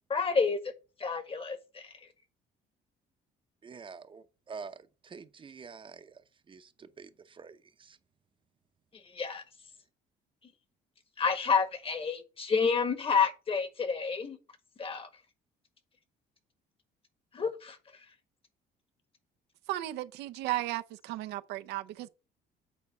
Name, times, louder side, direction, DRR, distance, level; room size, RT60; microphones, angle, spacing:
voice 1, 0.1-0.6 1.0-1.9 9.1-9.4 11.2-14.4 14.8-15.1 17.3-17.8, left 5 dB, 35° left, 1.5 m, -29 dB
voice 2, 3.6-4.8 5.0-6.1 6.5-6.7 7.0-7.6 7.9-8.0, right 5 dB, 30° right, 0.7 m, -46 dB
voice 3, 19.7-22.1, right 16 dB, 85° right, 0.7 m, -35 dB
8.4 x 4.2 x 5.3 m
cardioid pair, 110°, 17 cm